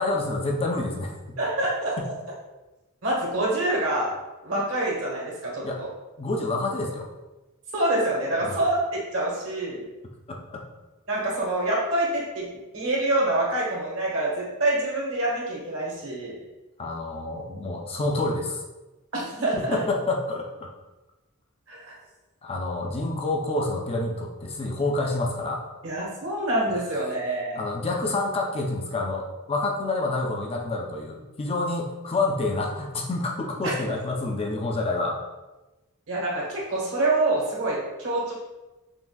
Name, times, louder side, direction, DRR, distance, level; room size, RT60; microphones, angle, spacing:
voice 1, 0.0-1.4 2.0-2.1 5.6-5.8 6.2-7.1 8.4-8.6 10.3-10.6 16.8-18.6 19.5-20.7 22.4-25.7 27.6-35.2, left 2 dB, 25° left, 1 dB, 0.4 m, -28 dB
voice 2, 1.4-2.0 3.0-4.1 4.4-5.9 7.7-9.8 11.1-12.5 12.7-16.4 19.1-19.8 21.7-22.0 25.8-27.6 33.6-33.7 36.1-38.3, right 1 dB, 65° right, -4 dB, 1.2 m, -26 dB
5.8 x 2.4 x 2.3 m, 1.1 s
head